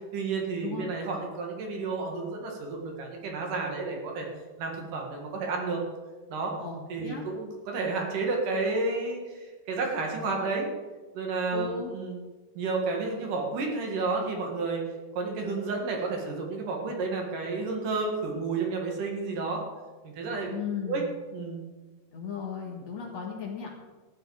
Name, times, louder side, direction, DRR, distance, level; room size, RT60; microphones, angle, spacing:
voice 1, 0.1-4.3 4.6-5.8 6.3-6.5 6.9-10.7 11.1-12.2 12.5-14.8 15.1-19.6 20.0-20.5 20.8-21.0 21.3-21.6, right 3 dB, 70° right, 1 dB, 3.4 m, -31 dB
voice 2, 6.6-7.2 11.5-11.9 20.4-21.1 22.1-23.7, left 6 dB, 55° left, -1 dB, 2.7 m, -36 dB
14.0 x 9.9 x 4.9 m, 1.3 s
omnidirectional pair, 3.9 m